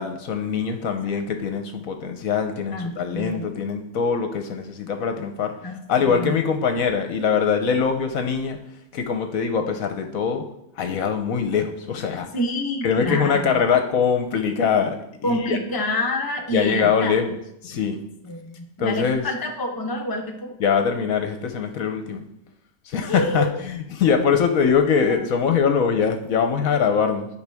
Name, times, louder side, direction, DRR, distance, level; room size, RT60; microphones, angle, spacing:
voice 1, 0.0-5.5 5.9-8.6 8.9-10.5 10.8-12.3 12.8-15.0 15.2-15.6 16.5-18.0 18.8-19.2 20.6-22.2 22.9-27.3, left 6 dB, 70° left, 6 dB, 1.1 m, -22 dB
voice 2, 2.7-3.4 5.6-5.8 6.1-6.3 12.3-13.6 15.2-17.1 18.2-20.6 23.1-23.5, left 1 dB, 15° left, 1 dB, 0.8 m, -27 dB
11.0 x 5.1 x 3.5 m, 0.79 s
omnidirectional pair, 1.6 m